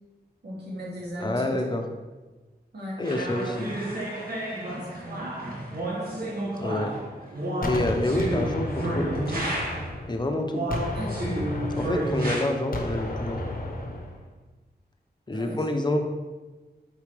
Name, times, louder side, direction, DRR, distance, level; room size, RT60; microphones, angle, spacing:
voice 1, 0.4-1.6 2.7-3.0 4.7-5.4 5.9-6.3 10.9-11.2 15.3-15.6, equal, 80° right, -5 dB, 2.0 m, -37 dB
voice 2, 1.2-1.8 3.0-3.8 6.6-6.9 7.6-8.7 8.9-9.5 10.1-10.7 11.8-13.4 15.3-16.0, left 1 dB, 25° left, 4 dB, 0.7 m, -27 dB
sound 1, 3.0-10.0 10.5-12.4, right 1 dB, 60° right, 1.7 m, -31 dB
Gunshot gunfire, 7.6-10.3 10.7-14.2, left 1 dB, 60° left, 0.9 m, -32 dB
8.7 x 4.1 x 3.4 m, 1.2 s
wide cardioid pair, 95°, 17 cm